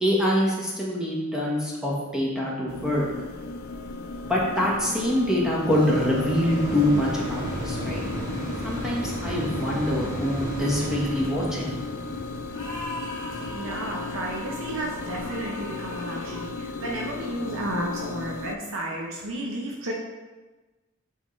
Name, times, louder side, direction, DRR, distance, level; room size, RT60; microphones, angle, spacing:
voice 1, 0.0-3.1 4.3-8.0 8.6-11.8, left 1 dB, 5° right, -5 dB, 1.2 m, -25 dB
sound 1, 2.7-18.6, left 3 dB, 90° left, 0.5 m, -35 dB
sound 2, 4.6-15.8 16.4-16.5, right 1 dB, 35° right, 2.0 m, -36 dB
sound 3, 5.6-8.4 12.5-16.6, left 1 dB, 20° left, 1.1 m, -40 dB
voice 2, 13.4-19.9, right 1 dB, 75° right, -2 dB, 0.8 m, -32 dB
8.2 x 3.9 x 3.2 m, 1.2 s
head